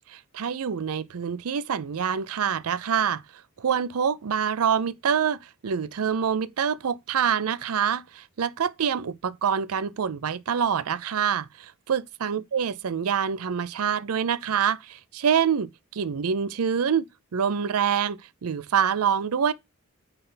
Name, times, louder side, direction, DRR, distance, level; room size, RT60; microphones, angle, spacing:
voice 1, 0.3-3.2 3.6-17.0 17.3-19.5, right 7 dB, 85° right, 0.5 m, -26 dB
9.7 x 3.3 x 3.9 m
head